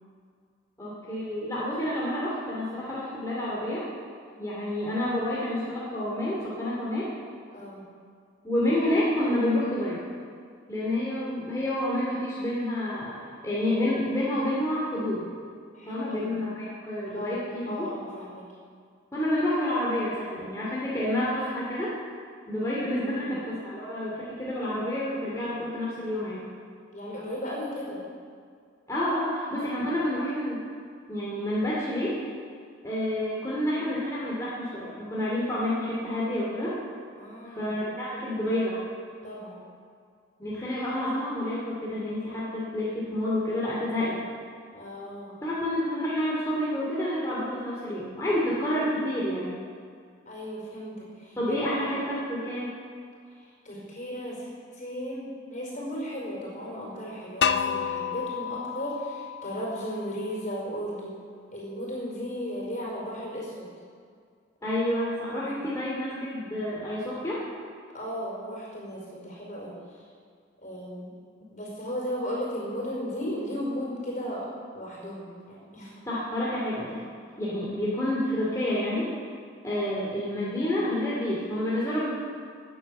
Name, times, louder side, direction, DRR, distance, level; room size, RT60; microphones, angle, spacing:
voice 1, 0.8-3.8 4.4-7.1 8.4-10.0 10.7-13.2 13.4-15.3 15.9-17.9 19.1-21.9 22.5-26.5 28.9-30.6 31.1-32.2 32.8-36.7 37.4-38.8 40.4-44.2 45.4-49.5 51.4-52.7 64.6-67.4 76.1-77.0 77.4-79.1 79.6-82.1, left 1 dB, 15° left, -7 dB, 2.6 m, -29 dB
voice 2, 7.5-7.8 15.7-16.4 17.1-18.4 22.9-23.4 26.9-28.0 37.1-37.7 39.2-39.6 44.7-45.4 50.2-51.9 53.4-61.1 61.5-63.7 64.6-64.7 65.3-65.6 67.9-70.0 70.6-71.1 71.5-74.5 74.7-76.0, equal, 40° left, -3 dB, 4.9 m, -36 dB
sound 1, 57.4-60.3, left 7 dB, 60° left, 0.6 m, -30 dB
14.0 x 9.2 x 8.8 m, 2.1 s
head